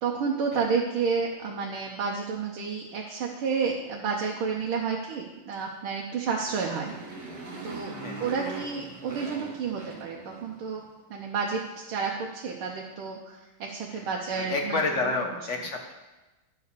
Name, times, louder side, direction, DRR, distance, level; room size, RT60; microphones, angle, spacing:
voice 1, 0.0-6.9 7.6-7.9 8.2-10.8 11.1-11.6 11.9-14.8, right 5 dB, 85° right, -1 dB, 1.8 m, -30 dB
Motorcycle, 6.2-10.8, right 3 dB, 50° right, 2.2 m, -41 dB
voice 2, 13.9-15.9, left 3 dB, 45° left, 3 dB, 1.1 m, -30 dB
11.5 x 4.8 x 6.7 m, 1.1 s
omnidirectional pair, 2.3 m